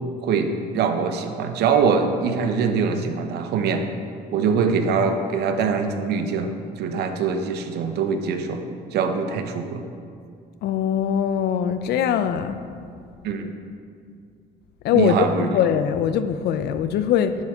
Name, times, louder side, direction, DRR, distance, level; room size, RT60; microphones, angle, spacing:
voice 1, 0.2-3.8 4.3-8.6 8.9-9.8 13.2-13.5 14.9-15.5, right 5 dB, 75° right, 6 dB, 0.9 m, -23 dB
voice 2, 10.6-12.6 14.8-17.4, left 9 dB, 75° left, 10 dB, 0.6 m, -22 dB
10.5 x 8.2 x 3.7 m, 2.3 s
cardioid pair, 110°, 17 cm